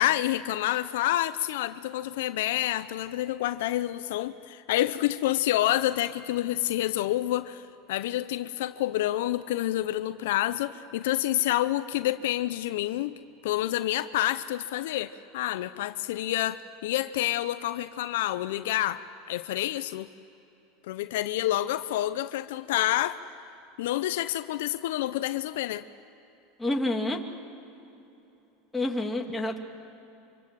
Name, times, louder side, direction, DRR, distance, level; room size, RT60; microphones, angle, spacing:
voice 1, 0.0-7.6 7.9-13.1 13.4-19.0 19.3-20.1 20.9-23.2 23.8-25.8, left 14 dB, 75° left, 12 dB, 0.7 m, -28 dB
voice 2, 26.6-27.2 28.7-29.6, left 1 dB, 10° left, 2 dB, 2.7 m, -28 dB
26.0 x 25.5 x 7.7 m, 2.9 s
hypercardioid pair, 105°, 0 cm